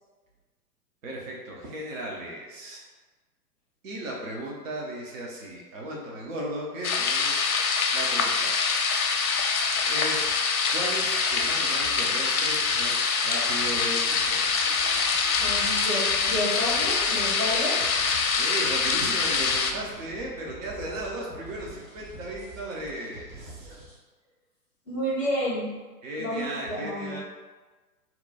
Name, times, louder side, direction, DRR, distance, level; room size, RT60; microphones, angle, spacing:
voice 1, 1.0-2.8 3.8-7.4 7.9-8.6 9.8-10.3 10.7-14.4 18.4-23.8 26.0-27.2, right 1 dB, 55° right, -2 dB, 0.8 m, -36 dB
sound 1, 6.8-19.7, left 5 dB, 65° left, 0.6 m, -25 dB
sound 2, 11.4-24.0, right 2 dB, 20° right, 0.7 m, -47 dB
voice 2, 15.4-17.8 20.8-20.9 23.6-23.7 24.9-25.7 26.2-27.2, equal, 10° left, -11 dB, 0.4 m, -30 dB
2.9 x 2.2 x 4.0 m, 1.3 s
figure-of-eight pair, 115°, 47 cm